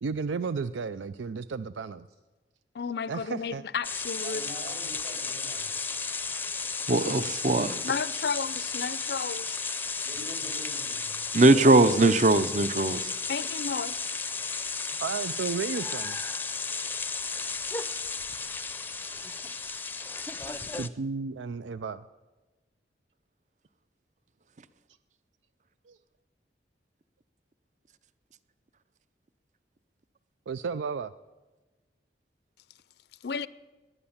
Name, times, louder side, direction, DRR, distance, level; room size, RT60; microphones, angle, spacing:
voice 1, 0.0-2.0 3.1-3.6 15.0-16.2 19.1-19.4 20.6-22.0 25.9-26.0 30.5-31.1, right 5 dB, 85° right, 0.4 m, -33 dB
voice 2, 2.7-4.4 7.8-9.6 13.3-14.0 33.2-33.5, left 5 dB, 60° left, 0.5 m, -33 dB
sound 1, 3.8-20.9, left 4 dB, 10° left, 0.5 m, -34 dB
voice 3, 4.2-5.7 10.0-12.0, right 1 dB, 55° right, 4.5 m, -44 dB
voice 4, 6.9-7.8 11.3-13.1, right 2 dB, 40° right, 0.6 m, -20 dB
20.0 x 9.8 x 7.2 m
head